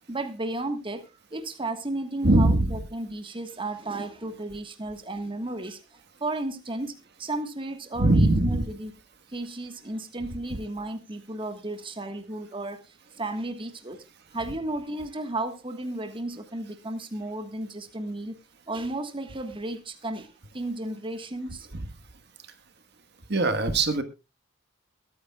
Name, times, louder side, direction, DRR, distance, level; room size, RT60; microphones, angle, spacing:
voice 1, 0.1-8.9 9.3-14.0 14.3-18.4 18.7-21.7, right 2 dB, 25° right, 1.4 m, -34 dB
voice 2, 2.2-2.8 8.0-8.6 21.7-21.9 23.3-24.0, right 2 dB, 55° right, 1.4 m, -21 dB
22.0 x 9.8 x 2.3 m
head